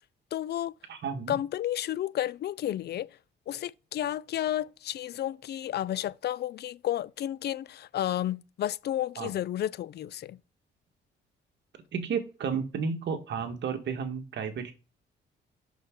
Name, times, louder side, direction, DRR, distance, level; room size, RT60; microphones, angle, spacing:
voice 1, 0.3-0.7 1.3-3.1 3.5-10.4, left 12 dB, 55° left, 0.4 m, -32 dB
voice 2, 0.9-1.3 9.2-9.3 11.9-14.7, right 6 dB, 65° right, 1.7 m, -32 dB
7.9 x 6.2 x 3.8 m
cardioid pair, 90°, 20 cm